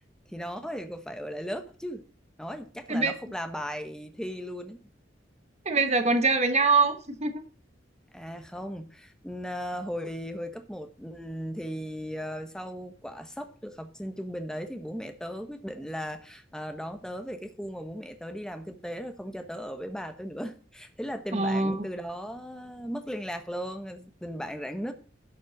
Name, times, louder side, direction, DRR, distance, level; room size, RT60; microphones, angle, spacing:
voice 1, 0.3-2.0 2.4-4.8 8.1-24.9, equal, 5° left, 7 dB, 1.1 m, -37 dB
voice 2, 5.6-7.3 21.3-21.8, right 3 dB, 35° right, 6 dB, 1.1 m, -23 dB
12.0 x 5.4 x 6.2 m, 0.40 s
head